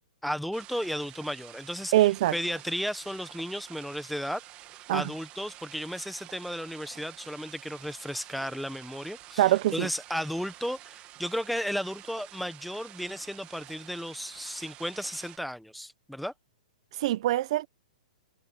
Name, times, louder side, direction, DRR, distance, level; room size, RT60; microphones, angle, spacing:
voice 1, 0.2-1.9 2.3-4.4 4.9-16.3, equal, ahead, 1.2 m, -34 dB
sound 1, 0.5-15.4, right 15 dB, 25° right, 1.7 m, -49 dB
voice 2, 1.9-2.3 4.9-5.1 9.4-9.9 17.0-17.7, right 15 dB, 45° right, 0.7 m, -23 dB
hypercardioid pair, 160°, 4 cm